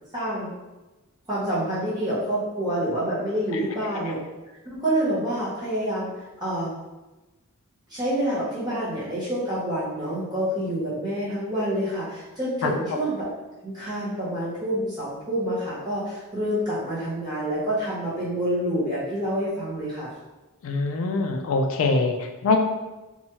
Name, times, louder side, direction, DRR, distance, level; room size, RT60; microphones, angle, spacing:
voice 1, 0.1-0.5 1.3-4.2 4.6-6.1 6.4-6.7 7.9-13.3 13.6-20.1, right 1 dB, 20° right, -10 dB, 0.7 m, -27 dB
voice 2, 12.6-13.0 20.6-22.6, left 3 dB, 60° left, 3 dB, 0.3 m, -24 dB
2.8 x 2.2 x 2.8 m, 1.1 s
head